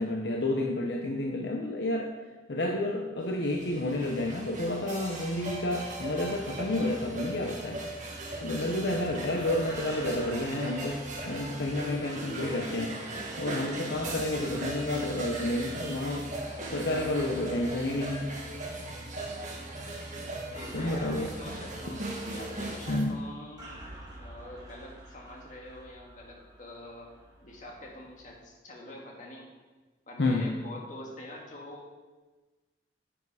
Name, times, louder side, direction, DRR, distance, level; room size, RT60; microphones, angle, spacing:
voice 1, 0.0-2.1 2.5-7.8 8.4-13.1 13.4-16.3 16.7-18.3 20.7-21.3 22.9-23.1 30.2-30.5, left 1 dB, 70° left, 2 dB, 0.9 m, -30 dB
sound 1, 3.2-23.0, right 2 dB, 45° right, 1.9 m, -38 dB
sound 2, 9.3-28.3, right 1 dB, 20° right, 2.5 m, -50 dB
sound 3, 16.6-18.9, right 3 dB, 85° right, 2.7 m, -47 dB
voice 2, 20.5-22.0 22.3-23.7 24.2-27.1 27.4-29.5 30.1-31.9, left 1 dB, 45° left, -1 dB, 1.9 m, -45 dB
10.0 x 7.2 x 4.9 m, 1.3 s
head